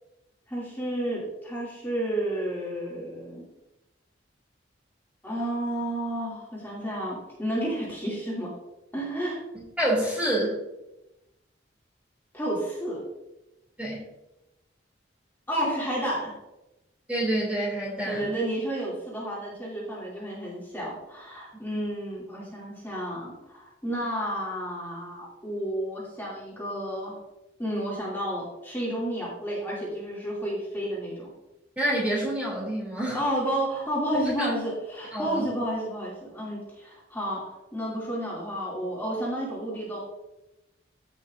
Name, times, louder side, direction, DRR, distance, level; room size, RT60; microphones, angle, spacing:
voice 1, 0.5-3.4 5.2-8.5 8.9-9.4 12.3-13.1 15.5-16.4 18.1-27.2 27.6-31.3 33.1-40.0, right 1 dB, 10° left, -6 dB, 2.6 m, -31 dB
voice 2, 9.5-10.6 13.8-14.0 17.1-18.4 21.5-21.8 31.8-33.2 34.1-34.5 35.1-35.5, right 1 dB, 10° right, -4 dB, 2.8 m, -28 dB
15.5 x 6.2 x 2.6 m, 0.96 s
head